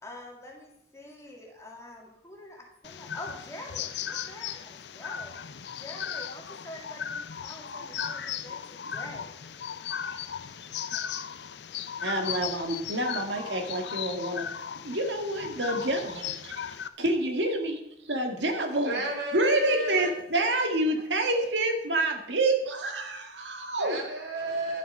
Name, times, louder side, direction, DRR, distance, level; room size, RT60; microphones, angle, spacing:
voice 1, 0.0-9.4, left 1 dB, 15° left, -1 dB, 2.4 m, -46 dB
sound 1, 2.8-16.9, left 8 dB, 70° left, 0.6 m, -37 dB
voice 2, 12.0-14.5 14.8-16.5 17.0-17.8 18.1-19.0 19.3-24.0, right 2 dB, 90° right, 4 dB, 2.0 m, -28 dB
voice 3, 18.8-20.1 20.3-20.5 23.8-24.8, right 1 dB, 70° right, 0 dB, 3.1 m, -32 dB
12.0 x 7.1 x 5.4 m, 0.82 s
head